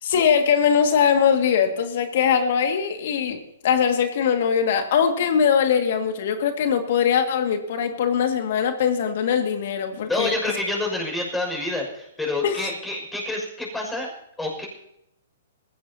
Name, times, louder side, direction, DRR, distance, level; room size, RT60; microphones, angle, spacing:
voice 1, 0.0-10.3 12.4-12.7, left 7 dB, 60° left, 5 dB, 2.2 m, -21 dB
voice 2, 10.1-14.1 14.4-14.7, left 2 dB, 5° left, 0 dB, 6.2 m, -27 dB
20.0 x 16.0 x 2.9 m, 0.78 s
hypercardioid pair, 135°, 0 cm